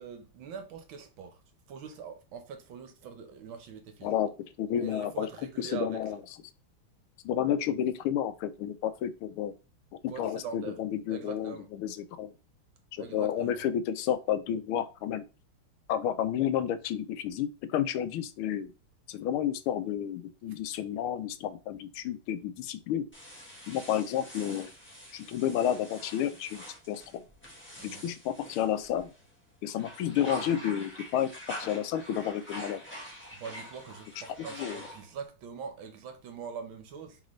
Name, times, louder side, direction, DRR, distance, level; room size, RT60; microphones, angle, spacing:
voice 1, 0.0-1.4 1.7-4.1 4.8-6.2 10.1-10.8 11.1-11.7 13.0-13.6 27.8-28.1 33.4-37.2, right 6 dB, 70° right, 1.6 m, -43 dB
voice 2, 4.0-4.3 4.6-5.3 5.6-6.2 7.2-9.5 10.2-12.3 13.1-15.2 15.9-18.7 19.1-23.1 23.7-24.7 25.1-27.2 27.8-29.1 29.6-31.3 31.6-32.8 34.6-34.8, left 10 dB, 80° left, 1.4 m, -31 dB
sound 1, 23.1-29.3 29.7-35.3, equal, 5° left, 1.1 m, -45 dB
4.0 x 3.8 x 3.1 m
omnidirectional pair, 2.4 m